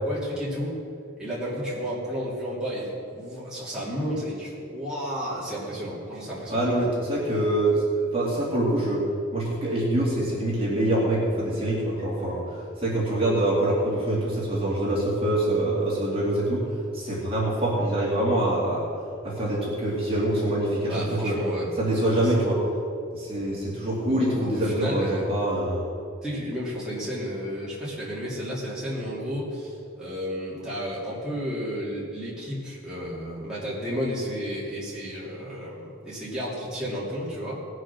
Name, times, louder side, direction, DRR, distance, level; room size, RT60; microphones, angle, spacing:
voice 1, 0.0-0.8 1.2-6.8 20.9-21.7 22.1-22.3 24.1-25.3 26.2-37.6, equal, 5° right, -9 dB, 2.8 m, -32 dB
voice 2, 6.5-9.0 9.3-16.6 16.9-18.8 19.2-21.4 21.8-22.6 23.1-25.8, right 1 dB, 30° right, -6 dB, 2.6 m, -25 dB
19.0 x 6.4 x 6.1 m, 2.5 s
head